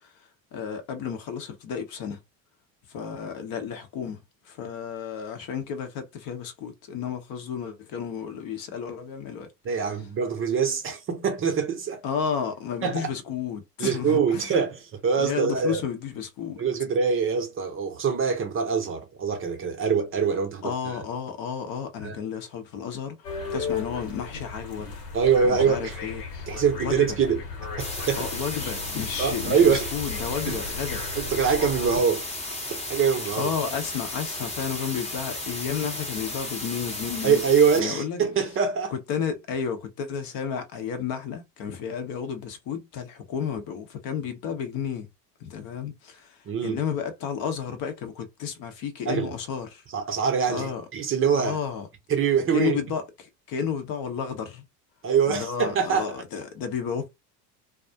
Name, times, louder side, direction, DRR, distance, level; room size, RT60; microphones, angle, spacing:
voice 1, 0.0-2.2 2.9-9.5 12.0-14.5 15.2-16.6 20.6-24.9 25.4-26.2 26.8-27.1 28.2-31.0 33.4-37.4 37.8-38.2 38.9-45.1 45.4-49.8 50.5-50.8 51.3-51.9 52.5-53.0 53.5-54.6 55.3-57.1, left 7 dB, 45° left, 0.7 m, -32 dB
voice 2, 9.6-12.0 12.8-13.1 13.8-15.8 16.6-21.0 22.0-22.2 25.1-26.0 26.5-27.4 27.8-28.2 29.2-29.9 30.5-30.6 31.2-32.2 32.7-33.5 37.2-38.9 46.5-46.8 49.1-49.3 49.9-51.6 52.1-52.8 55.0-56.1, right 6 dB, 25° right, 0.6 m, -24 dB
sound 1, 23.2-32.0, left 4 dB, 75° left, 1.1 m, -36 dB
sound 2, 27.8-37.8, left 2 dB, 15° left, 0.8 m, -34 dB
2.3 x 2.0 x 2.6 m
hypercardioid pair, 80°, 48 cm